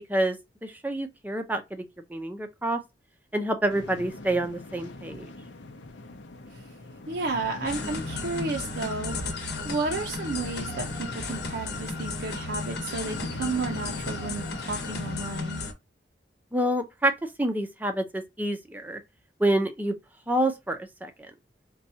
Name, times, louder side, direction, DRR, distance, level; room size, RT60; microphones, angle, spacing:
voice 1, 0.1-1.8 2.1-2.8 3.3-5.3 16.5-19.0 19.4-19.9 20.3-21.1, right 1 dB, 10° right, 0.5 m, -27 dB
sound 1, 3.7-15.2, left 2 dB, 85° left, 0.7 m, -42 dB
voice 2, 7.1-15.6, right 3 dB, 60° right, 0.5 m, -32 dB
sound 2, 7.6-15.7, left 3 dB, 65° left, 1.0 m, -34 dB
4.1 x 2.3 x 2.7 m
head